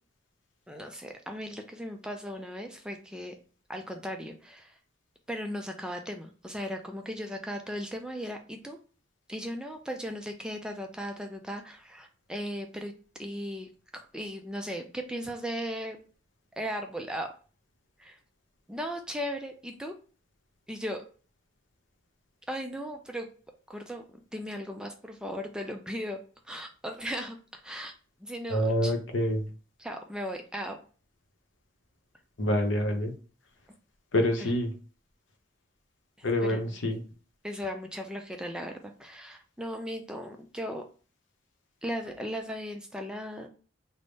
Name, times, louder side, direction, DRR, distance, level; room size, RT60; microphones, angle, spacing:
voice 1, 0.7-3.3 3.7-4.8 5.3-8.8 9.3-12.9 13.2-16.0 16.6-17.3 18.0-18.2 18.7-19.9 20.7-21.0 22.5-23.3 23.7-24.0 24.3-26.2 26.4-27.9 28.2-28.9 29.8-30.8 34.4-34.5 36.5-36.8 37.4-40.8 41.8-43.5, equal, 5° right, 4 dB, 0.3 m, -37 dB
voice 2, 28.5-29.4 32.4-33.1 34.1-34.7 36.2-37.0, left 1 dB, 85° left, 3 dB, 0.8 m, -26 dB
3.5 x 2.1 x 3.9 m, 0.38 s
head